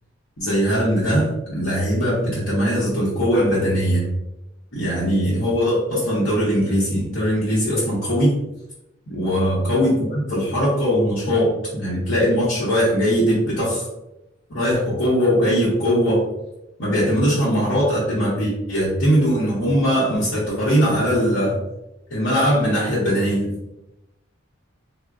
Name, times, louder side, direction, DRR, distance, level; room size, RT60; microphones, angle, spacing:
voice 1, 0.4-4.1 4.7-8.4 9.1-13.9 14.5-16.3 16.8-21.6 22.1-23.5, equal, 70° left, -8 dB, 0.9 m, -20 dB
3.6 x 2.1 x 2.5 m, 0.90 s
head